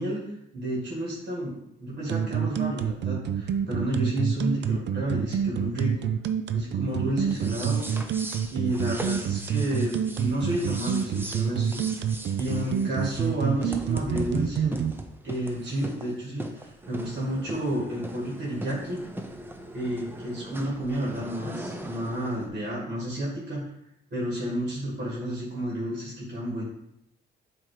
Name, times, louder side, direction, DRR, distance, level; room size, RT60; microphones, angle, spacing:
voice 1, 0.0-6.1 6.5-7.8 8.5-11.8 12.4-14.8 15.2-19.0 19.7-23.6 24.1-26.6, equal, 45° right, -3 dB, 2.0 m, -31 dB
sound 1, 2.1-14.9, right 8 dB, 60° right, 0.5 m, -27 dB
sound 2, 7.2-22.5, right 1 dB, 10° right, 0.7 m, -40 dB
7.4 x 2.9 x 4.9 m, 0.79 s
cardioid pair, 90°, 20 cm